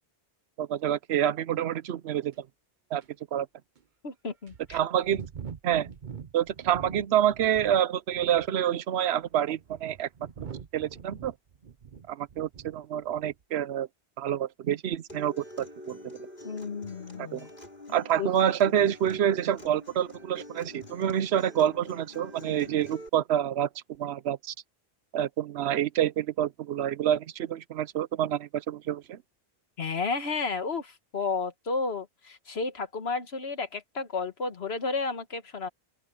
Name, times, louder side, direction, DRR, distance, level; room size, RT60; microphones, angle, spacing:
voice 1, 0.6-2.3 2.9-3.0 3.3-3.5 4.7-5.2 5.6-5.9 6.3-10.1 10.4-10.5 10.7-11.3 12.1-13.9 14.2-16.2 17.2-17.5 17.9-23.7 24.0-24.5 25.1-29.2, right 10 dB, 85° right, 0.9 m, -27 dB
sound 1, 2.3-2.4 3.0-3.1 3.8-3.9 4.5-7.8 8.1-8.6 9.3-12.8 13.1-13.4, right 7 dB, 50° right, 1.0 m, -44 dB
voice 2, 4.0-4.8 16.4-17.5 18.2-18.3 18.8-18.9 29.8-35.7, left 4 dB, 80° left, 1.7 m, -32 dB
Acoustic guitar, 15.1-23.1, left 1 dB, 50° left, 5.2 m, -47 dB
open air
omnidirectional pair, 1.0 m